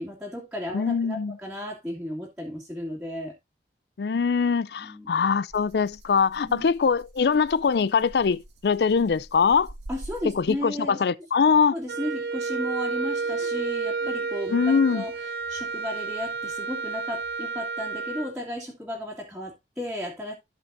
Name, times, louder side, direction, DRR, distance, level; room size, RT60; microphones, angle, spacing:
voice 1, 0.0-3.3 4.8-5.2 6.4-6.7 9.9-11.0 11.7-15.1 15.5-20.3, left 1 dB, 5° right, 2.4 m, -34 dB
voice 2, 0.7-1.4 4.0-9.7 10.4-11.8 14.5-15.0, left 5 dB, 70° left, 0.4 m, -22 dB
Rattle (instrument), 5.5-10.8, right 1 dB, 80° right, 2.0 m, -46 dB
sound 1, 10.4-10.5 10.8-10.9 13.1-15.2, left 1 dB, 45° left, 2.0 m, -51 dB
Wind instrument woodwind instrument, 11.9-18.3, right 4 dB, 65° right, 0.8 m, -31 dB
15.0 x 5.3 x 2.6 m
head